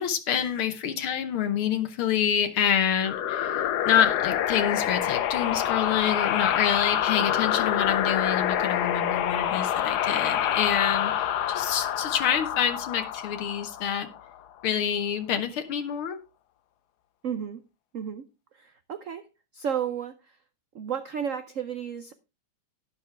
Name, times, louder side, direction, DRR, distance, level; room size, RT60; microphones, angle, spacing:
voice 1, 0.0-14.1 14.6-16.2, left 8 dB, 80° left, 8 dB, 1.9 m, -27 dB
sound 1, 3.0-14.4, left 10 dB, 65° left, 1.1 m, -27 dB
voice 2, 17.2-17.6 17.9-18.3 18.6-19.2 19.5-20.1 20.7-22.1, right 8 dB, 75° right, 11 dB, 0.7 m, -32 dB
11.5 x 10.5 x 3.3 m, 0.26 s
omnidirectional pair, 2.3 m